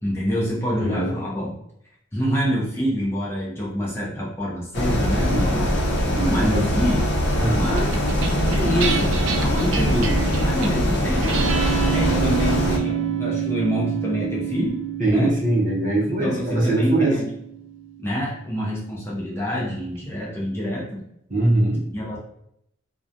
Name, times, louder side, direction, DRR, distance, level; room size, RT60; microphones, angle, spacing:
voice 1, 0.0-1.5 2.1-5.7 6.2-7.1 7.5-7.9 8.5-11.4 11.8-14.8 15.1-15.3 16.1-17.3 18.0-21.0 21.9-22.2, equal, 10° left, -5 dB, 0.5 m, -26 dB
voice 2, 0.7-1.2 5.1-5.7 6.1-6.6 7.3-7.6 15.0-17.2 21.3-21.8, right 2 dB, 40° right, -4 dB, 0.8 m, -22 dB
sound 1, 4.7-12.8, equal, 65° left, 0.6 m, -22 dB
sound 2, 7.8-18.4, right 6 dB, 75° right, 0.4 m, -28 dB
3.0 x 2.1 x 2.5 m, 0.76 s
head